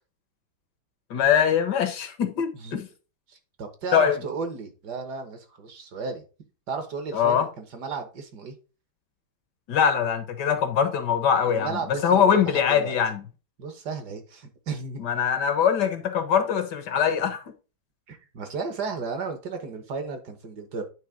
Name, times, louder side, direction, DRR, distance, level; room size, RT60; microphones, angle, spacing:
voice 1, 1.1-2.9 3.9-4.2 7.1-7.5 9.7-13.2 15.0-17.4, left 8 dB, 65° left, 1.3 m, -22 dB
voice 2, 3.3-6.2 6.7-8.5 11.5-12.9 13.6-15.0 18.1-20.8, right 4 dB, 60° right, 1.6 m, -34 dB
9.4 x 3.3 x 4.9 m
omnidirectional pair, 2.1 m